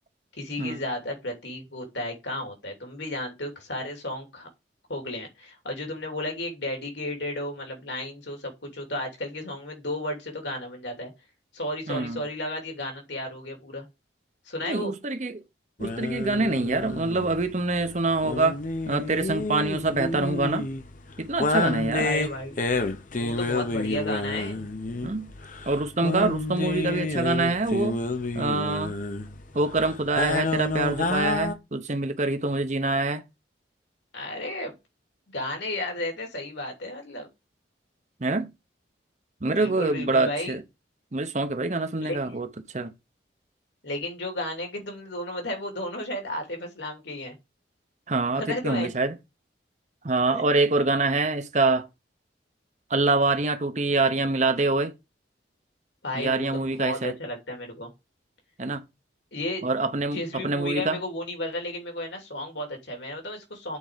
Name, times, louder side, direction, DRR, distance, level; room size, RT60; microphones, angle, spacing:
voice 1, 0.4-4.5 4.9-11.1 11.5-13.9 14.4-14.9 22.0-22.6 23.1-24.7 34.1-34.7 35.3-37.3 39.5-40.6 42.0-42.3 43.8-47.3 48.4-48.9 50.3-50.5 56.0-56.5 56.8-57.9 59.3-59.7 60.1-63.8, left 1 dB, 70° left, 2.8 m, -33 dB
voice 2, 11.9-12.2 14.6-15.4 15.8-18.6 18.9-20.7 21.2-22.1 25.0-25.3 25.7-28.0 28.3-28.9 29.5-33.2 38.2-38.5 39.4-40.6 41.1-42.5 42.7-42.9 48.1-49.2 50.0-51.9 52.9-54.9 56.1-57.2 58.6-58.8 59.6-61.0, right 3 dB, 40° right, 0.8 m, -25 dB
sound 1, 15.8-31.6, left 2 dB, 45° left, 0.9 m, -30 dB
8.3 x 4.3 x 5.0 m
head